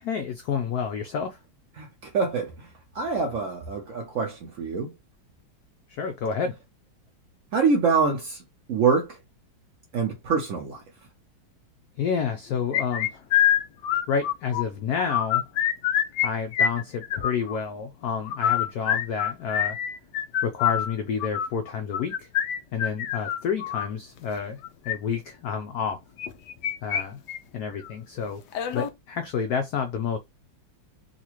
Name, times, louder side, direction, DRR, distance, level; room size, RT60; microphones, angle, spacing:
voice 1, 0.0-1.4 5.9-6.6 11.9-13.2 14.1-15.4 16.2-19.8 20.4-22.3 22.7-26.0 26.8-27.2 27.5-28.4 28.7-30.2, left 6 dB, 90° left, 0.8 m, -29 dB
voice 2, 1.8-2.7 2.9-4.9 7.5-8.4 8.7-9.2 9.9-10.8, right 5 dB, 80° right, 0.7 m, -25 dB
sound 1, 12.7-14.6 15.0-16.3 16.5-17.6 18.2-23.9 24.6-24.9 26.2-27.0 27.3-27.4 27.8-27.9 28.5-28.9, left 10 dB, 70° left, 1.1 m, -25 dB
3.9 x 2.4 x 2.9 m
omnidirectional pair, 2.2 m